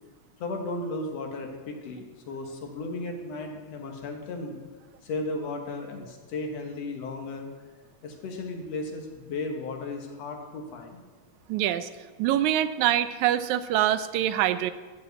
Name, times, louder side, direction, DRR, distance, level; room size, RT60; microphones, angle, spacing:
voice 1, 0.4-4.6 5.0-7.5 8.0-11.0, left 2 dB, 65° left, 3 dB, 2.4 m, -35 dB
voice 2, 11.5-11.9 12.2-14.7, right 12 dB, 85° right, 12 dB, 2.0 m, -24 dB
13.5 x 5.2 x 8.0 m, 1.3 s
omnidirectional pair, 3.3 m